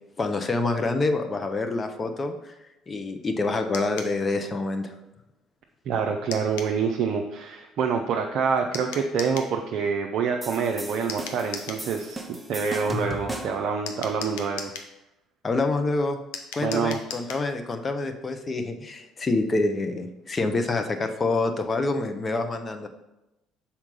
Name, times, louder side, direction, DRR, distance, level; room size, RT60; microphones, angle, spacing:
voice 1, 0.2-2.5 2.9-5.0 15.4-16.2 16.5-22.9, left 3 dB, 30° left, 6 dB, 0.8 m, -27 dB
sound 1, 3.7-4.2 6.3-6.8 8.7-9.5 11.1-11.9 13.9-14.9 16.3-17.5, left 6 dB, 70° left, 0.7 m, -37 dB
voice 2, 5.9-14.7 16.6-17.0, right 6 dB, 55° right, 2 dB, 0.6 m, -26 dB
sound 2, 10.4-13.7, equal, 10° right, 0.9 m, -36 dB
6.0 x 4.3 x 5.3 m, 0.95 s
figure-of-eight pair, 55°, 0 cm